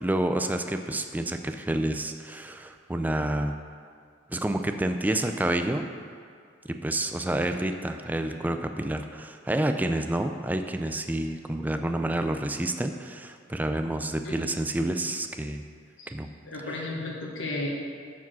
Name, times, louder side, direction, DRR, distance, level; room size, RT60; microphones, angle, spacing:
voice 1, 0.0-3.5 4.3-5.9 6.8-15.6 16.1-16.3, right 1 dB, 10° right, 6 dB, 0.4 m, -29 dB
voice 2, 16.4-17.7, left 2 dB, 70° left, -2 dB, 1.4 m, -33 dB
9.3 x 4.9 x 6.2 m, 2.2 s
head